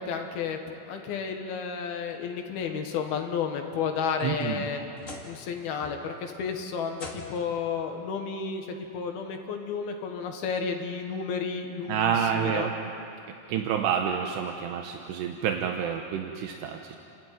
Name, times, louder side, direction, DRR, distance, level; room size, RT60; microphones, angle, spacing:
voice 1, 0.0-4.8 5.2-12.7, left 6 dB, 70° left, 4 dB, 3.3 m, -32 dB
sound 1, 4.1-5.5 5.8-6.3 6.9-7.6 8.8-8.9 9.5-9.6 11.2-11.3, left 2 dB, 25° left, 1.8 m, -45 dB
voice 2, 4.2-4.7 11.9-12.8 13.3-17.0, right 8 dB, 80° right, 3 dB, 3.2 m, -28 dB
30.0 x 13.5 x 9.3 m, 2.6 s
omnidirectional pair, 4.9 m